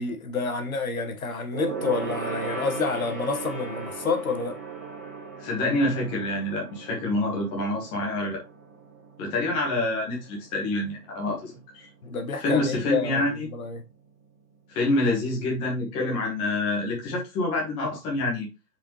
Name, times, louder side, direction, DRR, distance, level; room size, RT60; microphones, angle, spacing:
voice 1, 0.0-4.6 12.0-13.8, left 4 dB, 60° left, 1.6 m, -29 dB
Gong, 1.5-11.3 11.6-11.8 12.1-12.2, right 4 dB, 10° right, 0.6 m, -38 dB
voice 2, 5.4-8.4 9.2-11.9 12.4-13.5 14.7-18.5, left 2 dB, 10° left, 1.2 m, -27 dB
6.8 x 4.9 x 3.0 m
figure-of-eight pair, 145°, 48 cm